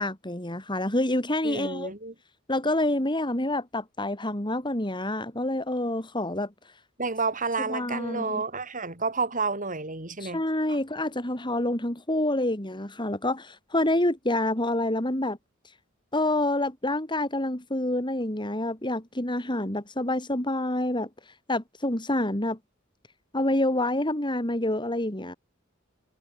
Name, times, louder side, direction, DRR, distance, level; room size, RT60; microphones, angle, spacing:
voice 1, 0.0-1.9 2.5-6.5 7.7-8.4 10.2-15.4 16.1-21.1 21.5-22.6 23.3-25.3, left 1 dB, 25° left, 3.7 m, -27 dB
voice 2, 1.4-2.1 7.0-10.4 10.7-10.8, right 4 dB, 40° right, 6.2 m, -30 dB
head